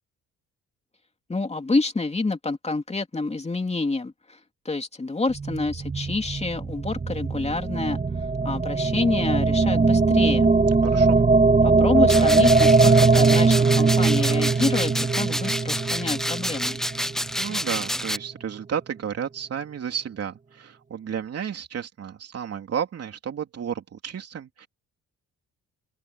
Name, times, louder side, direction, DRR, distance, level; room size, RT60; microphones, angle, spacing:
voice 1, 1.3-4.4 4.6-8.0 8.4-10.5 11.6-16.8, left 3 dB, 20° left, 3.2 m, -27 dB
sound 1, 5.3-17.6, right 4 dB, 25° right, 1.8 m, -21 dB
voice 2, 10.8-11.2 17.4-24.7, right 8 dB, 55° right, 3.2 m, -32 dB
sound 2, 12.1-18.2, equal, ahead, 0.5 m, -29 dB
open air
cardioid pair, 90°, 30 cm